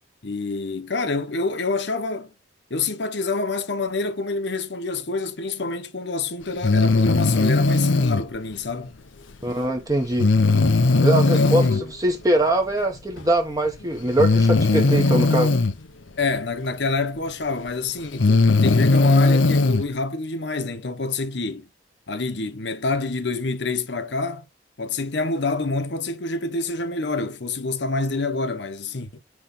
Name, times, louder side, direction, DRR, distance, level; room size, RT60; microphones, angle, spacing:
voice 1, 0.2-2.3 2.7-9.0 11.2-11.9 16.2-21.7 22.1-24.4 24.8-29.2, left 3 dB, 60° left, 1.0 m, -27 dB
Breathing, 6.6-8.2 10.2-11.8 13.2-13.3 14.2-15.7 17.3-17.4 18.0-19.8, left 3 dB, 85° left, 0.8 m, -18 dB
voice 2, 9.4-10.3 11.0-15.5, right 1 dB, 20° right, 1.1 m, -22 dB
9.5 x 3.2 x 4.0 m
head